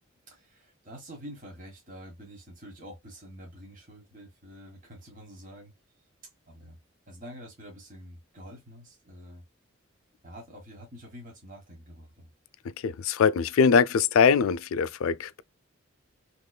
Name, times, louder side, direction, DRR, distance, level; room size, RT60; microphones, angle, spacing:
voice 1, 0.3-5.7 6.5-6.8 7.1-9.4 10.2-12.3, equal, 40° right, 1.3 m, -47 dB
voice 2, 12.8-15.4, left 6 dB, 80° left, 0.4 m, -22 dB
3.7 x 3.0 x 2.2 m
head